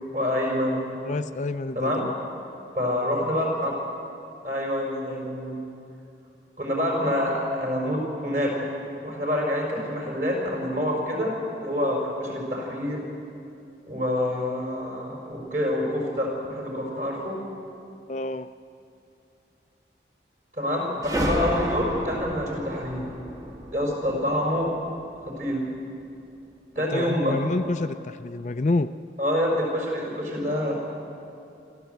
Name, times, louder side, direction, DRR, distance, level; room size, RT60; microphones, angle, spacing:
voice 1, 0.1-0.8 1.8-2.0 2.8-3.7 4.4-5.7 6.6-8.7 9.0-11.3 11.6-13.0 13.9-17.4 20.5-23.0 23.7-24.7 25.2-25.6 26.8-27.4 29.2-30.7, left 1 dB, 45° right, 0 dB, 5.2 m, -26 dB
voice 2, 1.1-2.1 18.1-18.5 26.9-28.9, left 2 dB, 40° left, 10 dB, 0.4 m, -28 dB
sound 1, 21.0-25.5, right 1 dB, 20° right, 1.2 m, -32 dB
25.0 x 14.0 x 8.1 m, 2.6 s
head